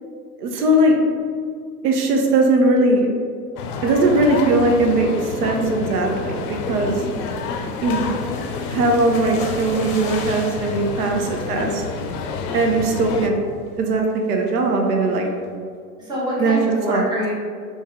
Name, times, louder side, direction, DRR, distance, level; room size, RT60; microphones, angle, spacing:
voice 1, 0.4-1.0 1.8-3.1 3.8-7.0 7.8-8.1 8.7-11.8 12.5-13.3 13.8-15.3 16.4-16.6 16.9-17.0, right 2 dB, 75° right, 1 dB, 0.7 m, -19 dB
sound 1, 3.6-13.3, left 5 dB, 70° left, 0.5 m, -29 dB
sound 2, 6.4-12.2 12.6-12.9 13.2-13.3 13.7-14.0, left 3 dB, 35° left, 0.7 m, -38 dB
voice 2, 6.9-7.4 11.0-11.3 16.0-17.3, equal, 10° right, -6 dB, 0.8 m, -27 dB
3.6 x 3.0 x 2.8 m, 2.1 s
hypercardioid pair, 125°, 48 cm